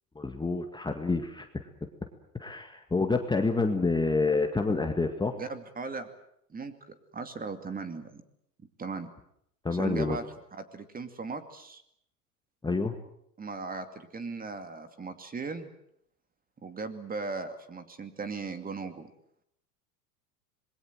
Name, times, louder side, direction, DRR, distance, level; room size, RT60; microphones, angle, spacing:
voice 1, 0.1-1.5 2.4-5.4 9.6-10.2 12.6-12.9, left 3 dB, 10° left, 5 dB, 1.9 m, -28 dB
voice 2, 5.4-6.1 6.5-8.2 8.8-9.1 9.7-10.3 10.5-11.8 13.4-15.7 16.6-19.1, right 4 dB, 15° right, 9 dB, 2.5 m, -38 dB
26.5 x 21.5 x 7.7 m, 0.73 s
hypercardioid pair, 100°, 48 cm